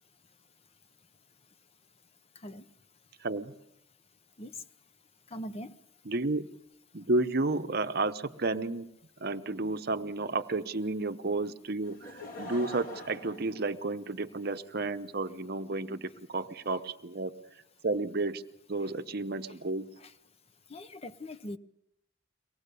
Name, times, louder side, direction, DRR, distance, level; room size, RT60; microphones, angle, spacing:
voice 1, 3.2-3.5 6.0-6.5 6.9-8.9 9.2-17.3 17.8-18.4 18.7-19.9, right 2 dB, 50° right, 10 dB, 0.9 m, -32 dB
voice 2, 5.3-5.7 20.0-20.1 20.7-21.6, left 1 dB, 30° left, 11 dB, 0.7 m, -41 dB
Laughter / Crowd, 11.8-14.5 15.2-15.3, left 1 dB, 45° left, 2.9 m, -44 dB
24.0 x 18.5 x 6.8 m, 0.80 s
head